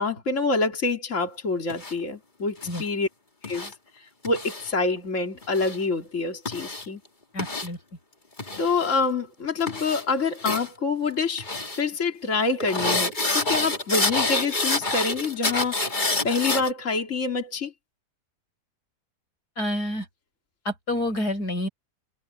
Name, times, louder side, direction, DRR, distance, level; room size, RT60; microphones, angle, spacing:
voice 1, 0.0-3.1 3.4-7.0 8.5-11.5 11.7-17.7, left 4 dB, 50° left, 3.1 m, -27 dB
sound 1, 1.7-1.9 2.6-2.8 3.4-3.7 4.2-4.7 5.4-5.8 6.5-6.8 7.4-7.7 8.4-9.0 9.6-10.0 10.4-10.7 11.4-11.8 12.6-16.7, left 2 dB, 30° left, 2.7 m, -27 dB
voice 2, 7.3-7.8 19.6-20.1 20.7-21.7, left 1 dB, 90° left, 7.1 m, -28 dB
omnidirectional pair, 1.7 m